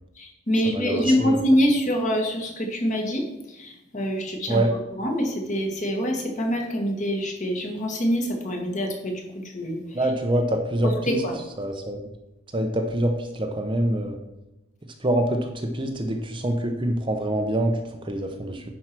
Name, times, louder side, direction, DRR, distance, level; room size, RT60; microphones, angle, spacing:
voice 1, 0.1-10.1 10.8-11.3, equal, 35° left, 2 dB, 1.7 m, -25 dB
voice 2, 0.7-1.4 4.5-4.7 9.9-11.2 11.6-12.0 12.5-14.2 15.0-18.6, right 1 dB, 25° right, 4 dB, 0.8 m, -25 dB
10.5 x 4.7 x 6.1 m, 0.94 s
head